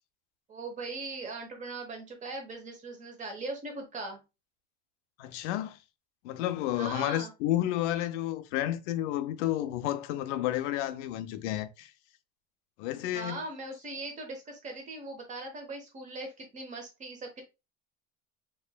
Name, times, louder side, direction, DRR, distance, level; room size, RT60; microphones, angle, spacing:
voice 1, 0.5-4.2 6.7-7.3 13.1-17.4, right 2 dB, 20° right, 0.9 m, -40 dB
voice 2, 5.2-5.8 6.2-11.9 12.8-13.4, left 13 dB, 75° left, 0.6 m, -31 dB
4.3 x 3.0 x 2.2 m
cardioid pair, 175°, 36 cm